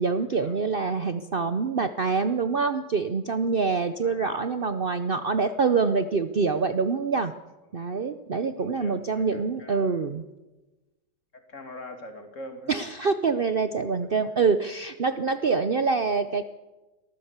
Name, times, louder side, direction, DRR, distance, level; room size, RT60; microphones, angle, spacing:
voice 1, 0.0-7.3 7.7-10.2 12.7-16.4, right 4 dB, 70° right, 10 dB, 0.5 m, -25 dB
voice 2, 4.0-4.4 7.7-7.8 8.5-10.0 11.3-12.8 14.0-14.1, left 1 dB, 40° left, 6 dB, 2.7 m, -43 dB
23.0 x 14.5 x 8.2 m, 1.1 s
omnidirectional pair, 2.1 m